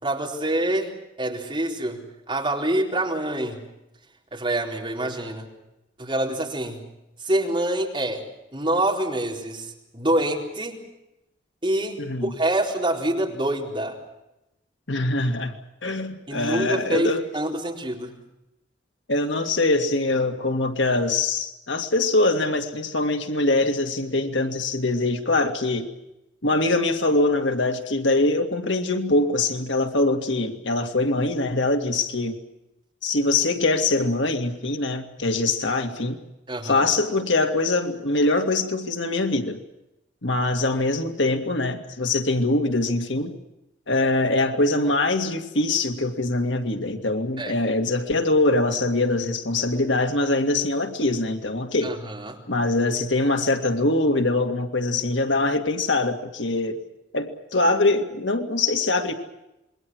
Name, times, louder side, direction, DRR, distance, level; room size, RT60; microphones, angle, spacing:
voice 1, 0.0-0.9 1.2-3.6 4.3-5.5 6.0-6.8 7.2-8.2 8.5-10.8 11.6-14.0 16.3-18.2 36.5-36.9 47.4-47.5 51.8-52.4, right 1 dB, 25° right, -1 dB, 4.2 m, -26 dB
voice 2, 12.0-12.3 14.9-17.2 19.1-25.9 26.4-32.4 33.0-36.2 36.6-39.6 40.2-43.3 43.9-52.0 52.5-56.8 57.1-59.1, left 2 dB, 85° left, 5 dB, 2.2 m, -23 dB
27.5 x 22.5 x 6.3 m, 0.91 s
head